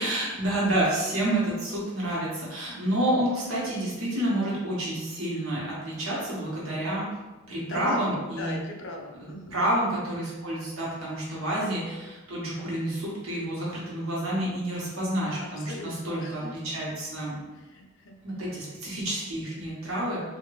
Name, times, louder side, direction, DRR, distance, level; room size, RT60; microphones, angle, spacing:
voice 1, 0.0-7.1 7.5-8.5 9.2-17.4 18.2-20.2, right 1 dB, 85° right, -6 dB, 1.2 m, -29 dB
voice 2, 7.6-9.9 15.4-16.6 17.5-18.2, left 2 dB, 65° left, 1 dB, 0.5 m, -39 dB
2.9 x 2.5 x 3.1 m, 1.1 s
head